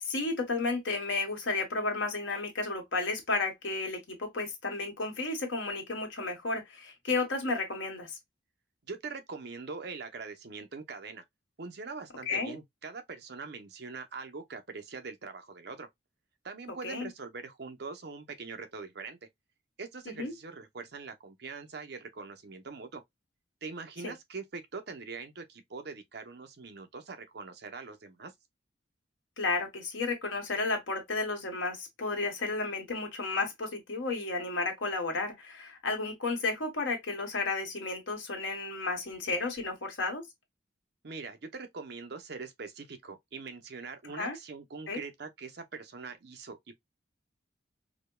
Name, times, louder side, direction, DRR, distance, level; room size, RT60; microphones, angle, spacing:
voice 1, 0.1-8.2 12.3-12.6 16.8-17.1 20.1-20.3 24.0-24.1 29.4-40.3 44.1-44.4 44.9-45.0, left 3 dB, 75° left, 1.3 m, -32 dB
voice 2, 8.9-11.2 11.6-15.9 16.4-19.2 19.8-23.0 23.6-28.3 41.0-46.8, right 4 dB, 60° right, 0.7 m, -43 dB
4.9 x 2.2 x 2.2 m
head